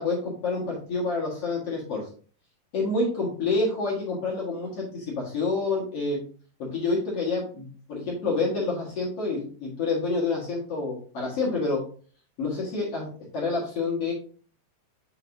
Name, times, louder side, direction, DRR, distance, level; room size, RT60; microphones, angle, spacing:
voice 1, 0.0-2.1 2.7-6.2 6.6-11.8 12.4-13.1 13.3-14.1, left 3 dB, 50° left, -4 dB, 2.1 m, -28 dB
7.3 x 6.0 x 2.7 m, 0.42 s
omnidirectional pair, 4.8 m